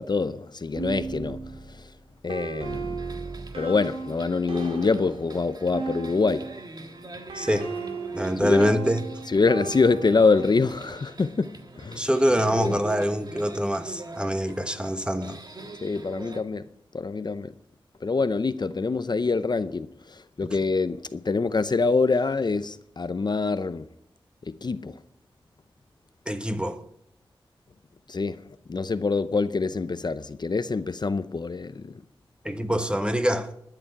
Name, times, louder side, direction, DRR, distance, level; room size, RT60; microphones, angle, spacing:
voice 1, 0.0-1.9 2.2-3.0 3.6-6.5 8.4-8.8 9.3-12.1 12.6-12.8 15.8-16.6 16.9-17.5 18.0-23.9 24.4-25.0 28.1-31.9, left 4 dB, 50° left, 0.6 m, -25 dB
sound 1, 0.8-6.7 7.3-10.5, right 4 dB, 90° right, 2.1 m, -36 dB
sound 2, 2.6-16.4, right 2 dB, 45° right, 1.5 m, -43 dB
voice 2, 7.3-7.7 8.1-9.0 12.0-15.4 26.3-26.8 32.4-33.5, equal, 10° right, 1.2 m, -25 dB
12.0 x 6.9 x 9.3 m
cardioid pair, 55°, 9 cm